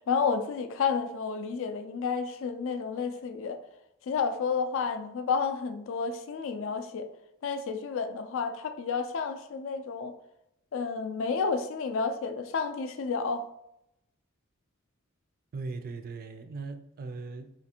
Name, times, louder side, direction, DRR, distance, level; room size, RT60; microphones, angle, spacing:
voice 1, 0.1-3.6 4.0-7.1 7.4-10.1 10.7-13.4, left 5 dB, 60° left, 0.3 m, -31 dB
voice 2, 15.5-17.6, right 3 dB, 45° right, 0.3 m, -39 dB
4.0 x 2.5 x 2.8 m
head